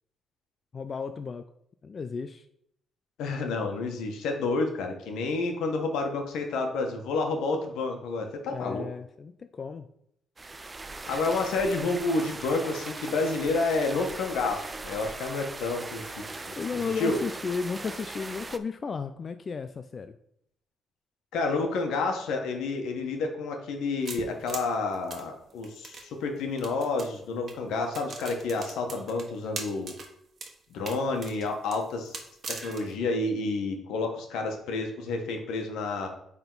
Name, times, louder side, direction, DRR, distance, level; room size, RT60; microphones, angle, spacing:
voice 1, 0.7-1.4 1.8-2.5 8.5-9.9 16.5-20.2, left 5 dB, 40° left, 9 dB, 0.4 m, -34 dB
voice 2, 3.2-8.8 11.1-16.5 17.0-17.2 21.3-29.9 30.7-32.2 32.5-36.1, left 3 dB, 85° left, 4 dB, 1.2 m, -29 dB
sound 1, 10.4-18.6, right 3 dB, 25° right, 0.5 m, -40 dB
sound 2, 24.1-26.0 26.6-27.1 27.5-27.6 27.9-30.1 30.4-30.5 30.9-32.9, right 4 dB, 50° right, 1.3 m, -40 dB
8.9 x 3.6 x 4.0 m, 0.73 s
cardioid pair, 90°, 0 cm